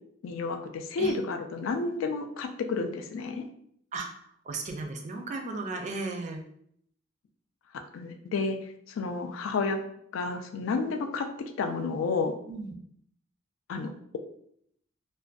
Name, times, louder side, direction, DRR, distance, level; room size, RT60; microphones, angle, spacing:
voice 1, 0.2-3.4 7.9-8.6 8.9-9.8 10.1-11.3 11.6-12.3 13.7-14.2, left 4 dB, 80° left, 6 dB, 0.3 m, -31 dB
voice 2, 3.9-6.4 12.5-12.7, right 3 dB, 35° right, 3 dB, 0.3 m, -35 dB
2.5 x 2.1 x 2.3 m, 0.69 s
head